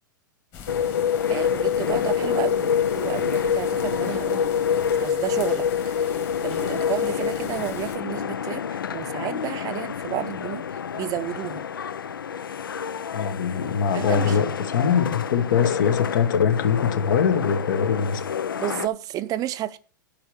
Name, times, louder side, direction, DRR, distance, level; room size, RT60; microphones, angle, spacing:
sound 1, 0.5-8.0, left 7 dB, 45° left, 2.3 m, -42 dB
sound 2, 0.7-18.9, left 7 dB, 90° left, 0.4 m, -27 dB
voice 1, 1.3-4.5 5.0-6.2 6.4-10.6 10.9-11.6 13.9-14.4 18.6-19.8, right 13 dB, 35° right, 0.6 m, -31 dB
voice 2, 13.1-18.2, left 7 dB, 65° left, 1.1 m, -23 dB
8.9 x 5.1 x 6.2 m
hypercardioid pair, 105°, 11 cm